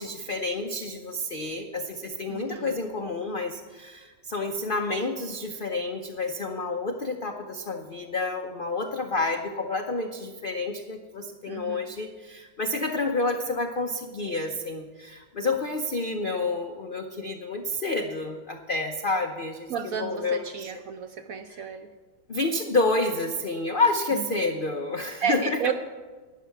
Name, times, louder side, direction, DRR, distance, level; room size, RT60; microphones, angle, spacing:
voice 1, 0.0-19.7 20.0-20.7 21.5-21.6 22.3-25.7, left 2 dB, 85° left, 4 dB, 0.4 m, -29 dB
voice 2, 2.3-2.8 11.5-11.9 19.7-21.9 24.4-24.5 25.2-25.7, right 7 dB, 70° right, 8 dB, 0.8 m, -32 dB
12.0 x 9.4 x 5.9 m, 1.4 s
omnidirectional pair, 2.0 m